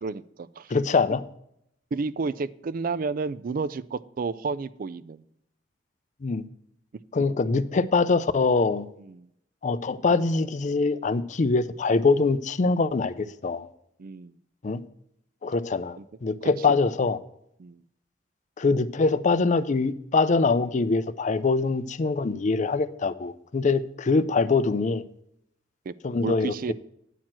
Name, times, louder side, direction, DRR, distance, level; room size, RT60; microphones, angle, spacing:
voice 1, 0.0-0.7 1.9-5.2 9.0-9.3 14.0-14.4 16.0-16.1 16.7-16.8 17.6-17.8 25.9-26.7, right 4 dB, 45° right, 0.4 m, -31 dB
voice 2, 0.7-1.2 6.2-6.4 7.1-8.9 9.6-13.7 14.6-14.8 15.4-17.2 18.6-25.0 26.0-26.7, left 4 dB, 40° left, 0.4 m, -24 dB
9.1 x 4.5 x 7.3 m
head